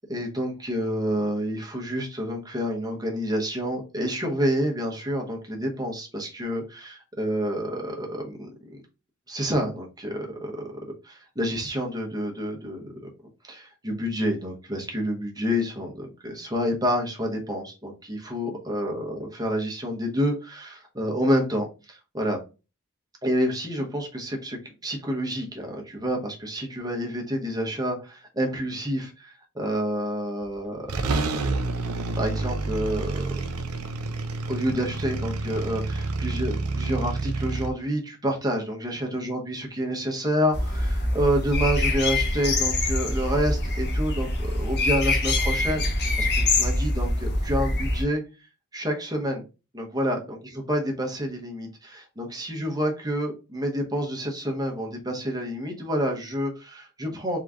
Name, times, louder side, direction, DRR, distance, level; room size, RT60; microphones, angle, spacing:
voice 1, 0.1-8.8 9.3-10.6 11.0-12.9 13.4-22.4 23.2-30.9 31.2-31.6 32.1-33.3 34.5-48.2 48.7-49.4 49.7-50.4 50.7-57.4, equal, 20° right, 1 dB, 1.1 m, -28 dB
sound 1, 30.4-30.5 30.9-37.7, right 3 dB, 75° right, 0.6 m, -29 dB
sound 2, 40.5-48.0, left 2 dB, 50° left, 1.1 m, -24 dB
3.8 x 3.2 x 3.7 m, 0.30 s
head